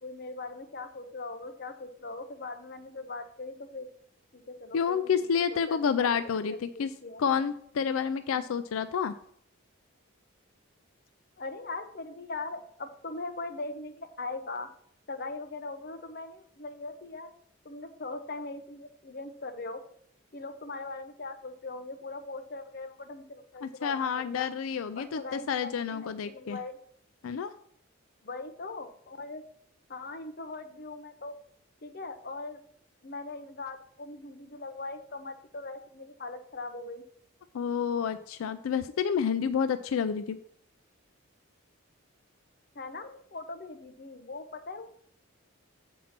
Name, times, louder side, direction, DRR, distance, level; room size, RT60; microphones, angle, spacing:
voice 1, 0.0-3.9 4.3-5.0 5.5-7.2 11.4-14.7 15.1-17.3 17.6-19.8 20.3-24.5 25.0-26.8 28.2-29.4 29.9-31.3 31.8-32.6 33.0-37.0 42.7-44.9, left 3 dB, 45° left, 7 dB, 0.8 m, -40 dB
voice 2, 4.7-6.9 7.2-9.1 23.6-26.6 27.2-27.5 37.5-40.4, left 7 dB, 85° left, 12 dB, 0.4 m, -29 dB
7.2 x 4.4 x 5.9 m, 0.66 s
head